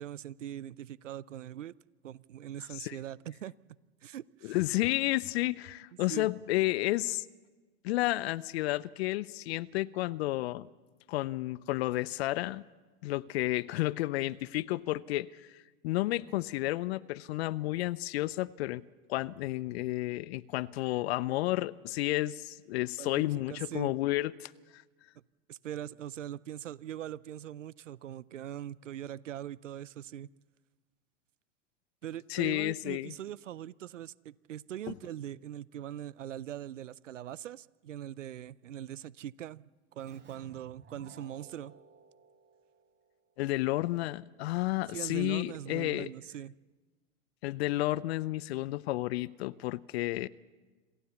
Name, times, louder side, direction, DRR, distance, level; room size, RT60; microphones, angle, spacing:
voice 1, 0.0-1.7 2.0-3.5 4.0-4.6 6.1-6.3 23.0-23.9 25.5-30.3 32.0-41.7 44.9-46.5, right 11 dB, 90° right, 21 dB, 0.5 m, -41 dB
voice 2, 4.4-7.3 7.8-10.7 11.1-12.6 13.0-18.8 19.1-24.8 32.3-33.1 43.4-46.1 47.4-50.3, left 17 dB, 60° left, 19 dB, 0.7 m, -31 dB
Keyboard (musical), 40.0-43.4, right 5 dB, 30° right, 5.8 m, -57 dB
27.0 x 15.0 x 7.1 m, 1.3 s
hypercardioid pair, 95°, 36 cm